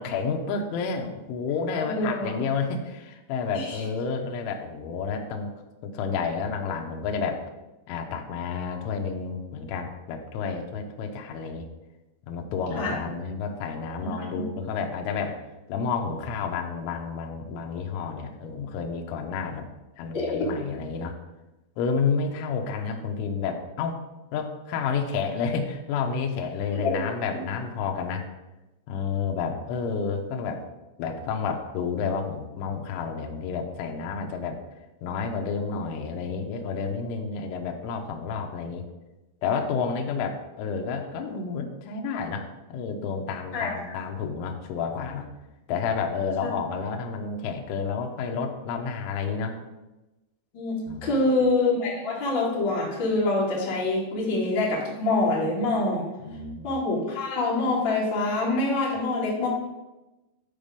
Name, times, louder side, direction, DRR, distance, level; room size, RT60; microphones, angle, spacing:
voice 1, 0.0-5.5 5.8-7.5 7.9-11.7 12.3-15.4 15.7-19.7 20.0-21.2 21.8-24.0 24.3-28.3 28.9-30.6 31.0-34.6 35.0-38.9 39.4-45.3 45.7-49.6 50.9-51.4 56.2-56.7, left 5 dB, 80° left, 3 dB, 3.3 m, -30 dB
voice 2, 1.7-2.3 3.5-3.7 12.8-12.9 20.1-20.4 26.8-27.0 27.3-27.4 43.5-43.9 50.5-56.1 56.6-59.5, left 2 dB, 35° left, -6 dB, 2.2 m, -25 dB
10.5 x 4.5 x 5.2 m, 1.0 s
omnidirectional pair, 5.8 m